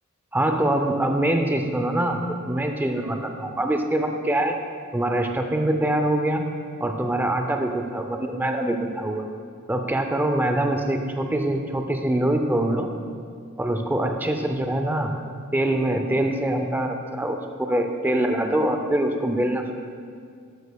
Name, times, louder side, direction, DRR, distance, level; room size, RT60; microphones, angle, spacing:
voice 1, 0.3-4.6 4.9-6.4 6.8-9.3 9.7-12.9 13.6-15.1 15.5-19.7, right 1 dB, 10° right, 4 dB, 0.4 m, -24 dB
12.5 x 7.1 x 2.2 m, 2.2 s
head